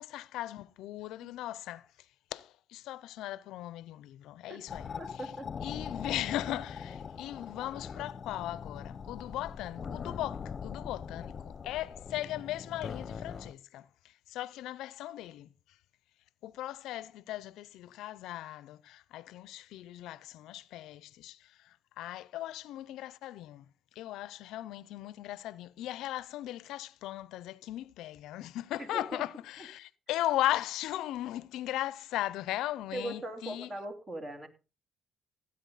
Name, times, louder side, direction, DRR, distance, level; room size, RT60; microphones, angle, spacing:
voice 1, 0.0-1.9 2.3-5.3 5.6-15.5 16.4-23.7 24.0-33.7, left 14 dB, 85° left, 0.5 m, -38 dB
sound 1, 4.7-13.5, left 6 dB, 45° left, 0.8 m, -41 dB
voice 2, 5.0-5.5 28.9-29.2 32.9-34.5, right 1 dB, 30° right, 3.0 m, -40 dB
16.5 x 8.8 x 4.0 m
cardioid pair, 80°, 0 cm